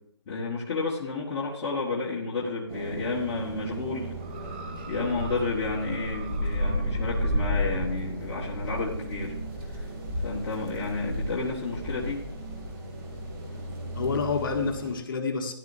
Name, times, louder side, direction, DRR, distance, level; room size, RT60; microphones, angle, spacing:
voice 1, 0.3-4.1 4.9-9.4 9.7-9.9 10.2-12.2, left 3 dB, 20° left, -5 dB, 1.4 m, -31 dB
sound 1, 2.7-14.9, equal, 50° right, 2.9 m, -33 dB
sound 2, 4.2-7.9 8.7-8.8, right 5 dB, 20° right, 0.5 m, -46 dB
voice 2, 4.7-5.2 13.9-15.5, left 4 dB, 45° left, 3 dB, 1.4 m, -29 dB
14.5 x 10.5 x 2.7 m, 0.70 s
hypercardioid pair, 160°, 15 cm